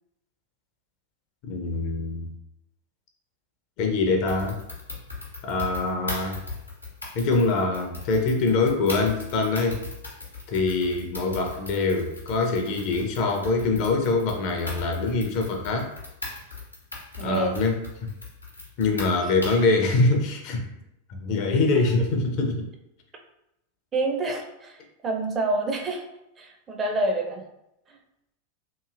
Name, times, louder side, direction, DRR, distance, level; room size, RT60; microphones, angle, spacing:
voice 1, 1.4-2.3 3.8-4.6 5.4-6.4 7.1-9.8 10.5-15.9 17.2-18.1 18.8-20.6 21.1-22.7, left 3 dB, 45° left, 4 dB, 0.5 m, -24 dB
sound 1, 4.3-19.7, left 3 dB, 85° left, 0.7 m, -39 dB
voice 2, 17.2-17.6 23.9-24.8 25.0-26.0 26.4-27.4 27.9-28.0, right 2 dB, 25° right, 2 dB, 0.5 m, -27 dB
2.9 x 2.5 x 2.4 m, 0.84 s
figure-of-eight pair, 90°, 0 cm